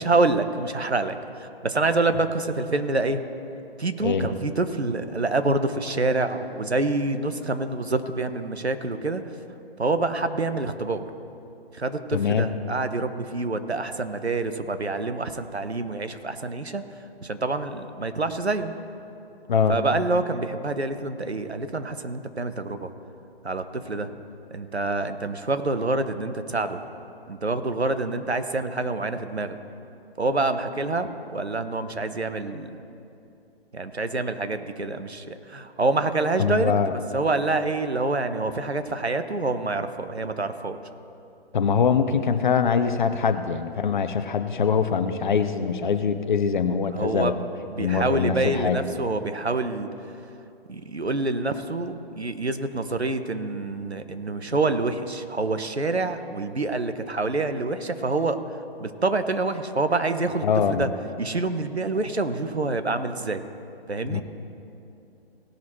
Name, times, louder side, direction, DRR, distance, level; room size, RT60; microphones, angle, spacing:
voice 1, 0.0-3.2 3.8-9.2 9.8-11.0 11.7-16.8 17.2-18.7 19.7-22.9 23.4-24.1 24.5-26.8 27.3-29.6 30.2-32.8 33.7-36.7 37.1-40.8 46.9-47.3 47.7-49.9 50.7-58.4 58.8-60.9 61.2-63.4 63.9-64.2, right 3 dB, 85° right, 9 dB, 1.0 m, -26 dB
voice 2, 4.0-4.3 12.1-12.5 19.5-19.8 36.4-36.9 41.5-47.3 47.8-48.8 60.4-60.9 64.1-64.2, left 6 dB, 50° left, 10 dB, 0.8 m, -23 dB
18.5 x 6.3 x 4.4 m, 2.7 s
figure-of-eight pair, 135°, 32 cm